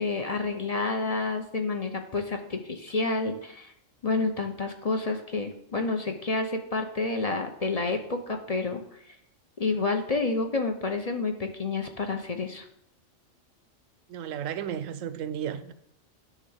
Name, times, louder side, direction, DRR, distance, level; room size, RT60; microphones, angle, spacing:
voice 1, 0.0-3.7 4.0-8.8 9.6-12.7, left 3 dB, 35° left, 0.7 m, -29 dB
voice 2, 14.1-15.7, right 9 dB, 80° right, 1.0 m, -33 dB
10.0 x 3.5 x 6.4 m
omnidirectional pair, 1.3 m